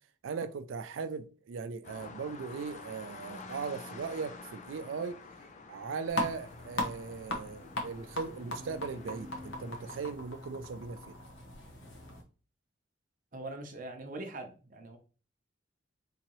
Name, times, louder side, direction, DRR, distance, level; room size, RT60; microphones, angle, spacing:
voice 1, 0.2-5.2 5.7-11.1, right 5 dB, 80° right, 0.4 m, -38 dB
sound 1, 1.8-10.1, left 3 dB, 40° left, 0.4 m, -49 dB
sound 2, 6.1-12.2, left 1 dB, 70° left, 0.9 m, -39 dB
voice 2, 13.3-15.0, right 2 dB, 45° right, 0.7 m, -42 dB
3.7 x 2.8 x 3.0 m
head